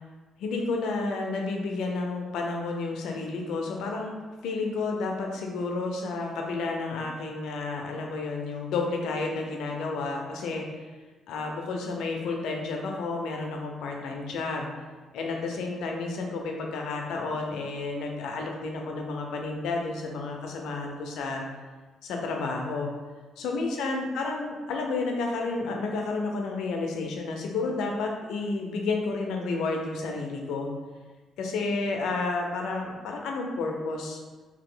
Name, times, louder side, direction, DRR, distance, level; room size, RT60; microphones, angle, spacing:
voice 1, 0.4-4.2 4.4-10.7 11.3-14.7 15.1-21.4 22.0-22.9 23.4-30.7 31.4-34.2, left 3 dB, 85° left, 1 dB, 0.6 m, -31 dB
3.1 x 2.9 x 3.8 m, 1.3 s
cardioid pair, 90°, 0 cm